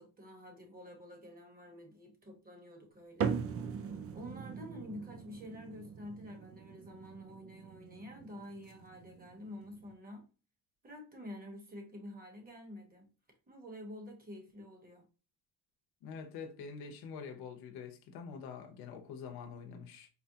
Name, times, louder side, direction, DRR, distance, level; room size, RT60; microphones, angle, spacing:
voice 1, 0.0-3.4 4.1-10.3 10.8-13.1 13.5-15.0, left 1 dB, 25° right, 1.2 m, -49 dB
sound 1, 3.2-9.9, right 6 dB, 40° right, 0.4 m, -41 dB
voice 2, 16.0-20.1, left 6 dB, 90° left, 0.8 m, -46 dB
4.2 x 2.2 x 2.7 m
cardioid pair, 110°, 37 cm